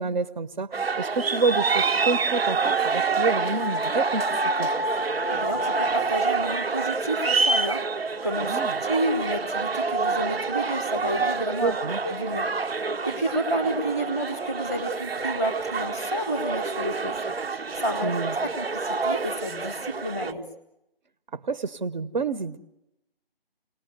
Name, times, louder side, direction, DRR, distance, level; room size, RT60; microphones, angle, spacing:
voice 1, 0.0-4.3 4.6-4.7 8.4-8.8 11.6-12.0 18.0-18.3 21.3-22.6, right 4 dB, 50° right, 14 dB, 0.9 m, -28 dB
sound 1, 0.7-20.3, right 4 dB, 90° right, 1.0 m, -27 dB
voice 2, 5.3-11.7 12.0-12.5 12.8-17.2 17.7-20.5, right 1 dB, 5° right, 7 dB, 0.8 m, -30 dB
28.5 x 19.0 x 8.0 m, 0.91 s
figure-of-eight pair, 165°, 30 cm